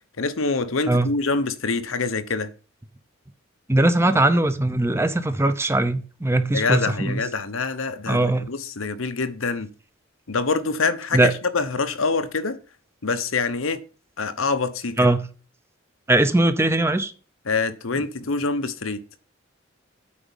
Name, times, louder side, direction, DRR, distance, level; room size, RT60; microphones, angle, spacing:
voice 1, 0.2-2.5 6.5-9.7 10.3-12.6 13.0-13.8 14.2-15.0 17.5-19.0, left 4 dB, 90° left, 0.9 m, -25 dB
voice 2, 3.7-7.2 8.1-8.5 11.1-11.3 15.0-15.3 16.1-17.1, right 2 dB, 15° right, 0.7 m, -20 dB
8.6 x 5.1 x 7.1 m
head